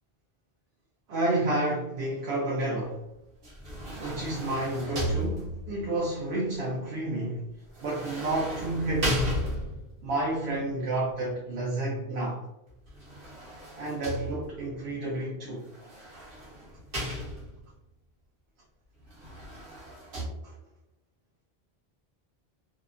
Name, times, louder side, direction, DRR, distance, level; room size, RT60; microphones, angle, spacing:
voice 1, 1.1-3.0 4.0-7.4 7.8-9.2 10.0-12.4 13.8-15.7 20.4-20.6, right 2 dB, 90° right, -4 dB, 0.9 m, -30 dB
sound 1, 3.4-5.9 7.7-10.0 12.9-14.7 15.7-17.7 19.1-20.3, equal, 65° right, 1.1 m, -35 dB
2.8 x 2.1 x 2.4 m, 0.91 s
omnidirectional pair, 1.0 m